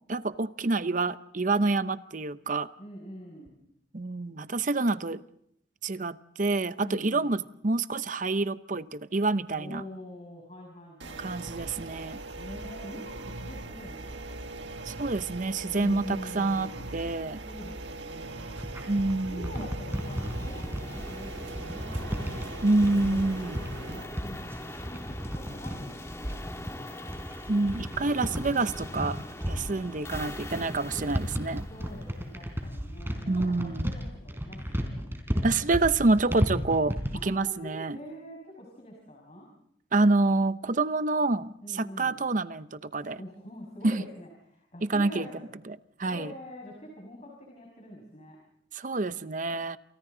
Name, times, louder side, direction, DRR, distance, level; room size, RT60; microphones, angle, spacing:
voice 1, 0.1-2.7 3.9-5.2 5.8-9.8 11.2-12.2 14.9-17.4 18.9-19.5 22.6-23.6 27.5-29.2 29.5-31.6 33.3-34.0 35.4-38.0 39.9-43.2 43.8-44.0 44.8-45.2 45.7-46.3 48.7-49.8, right 3 dB, 45° right, 13 dB, 0.8 m, -27 dB
voice 2, 2.8-3.6 6.8-7.4 9.5-11.6 12.3-14.7 15.7-16.9 17.4-18.5 19.3-22.4 22.9-27.1 31.7-35.1 37.1-39.5 41.6-42.2 43.1-45.5 46.0-48.4, equal, 35° left, 0 dB, 6.0 m, -45 dB
sound 1, 11.0-24.0, right 2 dB, 75° right, 1.7 m, -40 dB
sound 2, 18.2-37.3, equal, 15° right, 3.9 m, -34 dB
sound 3, 19.9-32.8, left 1 dB, 15° left, 2.4 m, -43 dB
29.0 x 28.0 x 3.9 m, 0.72 s
head